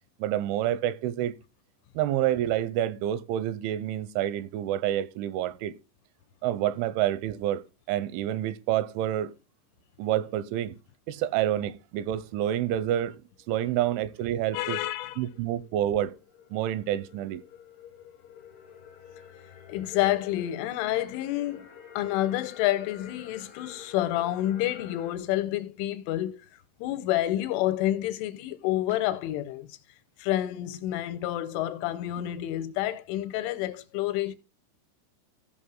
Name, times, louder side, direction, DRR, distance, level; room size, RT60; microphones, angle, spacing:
voice 1, 0.2-1.4 2.0-5.7 6.4-7.6 7.9-9.3 10.0-10.8 11.1-13.2 13.5-14.8 15.2-16.1 16.5-17.4, right 12 dB, 85° right, 3.0 m, -28 dB
sound 1, 13.2-25.2, left 8 dB, 60° left, 1.3 m, -50 dB
voice 2, 14.5-15.2 19.7-21.7 22.0-26.4 26.8-29.8 30.2-34.4, left 14 dB, 85° left, 3.2 m, -29 dB
15.0 x 5.6 x 3.7 m
omnidirectional pair, 5.4 m